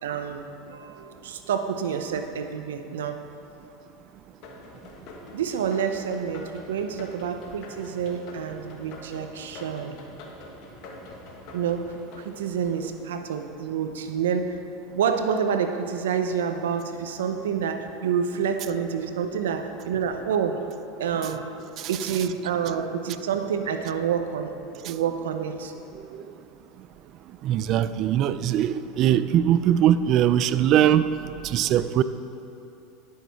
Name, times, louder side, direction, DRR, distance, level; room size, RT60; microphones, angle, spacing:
voice 1, 0.0-3.2 5.3-10.0 11.5-14.6 14.9-20.6 21.0-21.6 21.9-24.5 24.8-25.7, right 7 dB, 90° right, 7 dB, 0.7 m, -28 dB
sound 1, 4.4-13.5, left 2 dB, 55° left, 1.3 m, -45 dB
voice 2, 27.4-31.1 31.4-32.0, right 11 dB, 50° right, 13 dB, 0.4 m, -21 dB
10.5 x 6.5 x 4.7 m, 2.8 s
supercardioid pair, 110°, 0 cm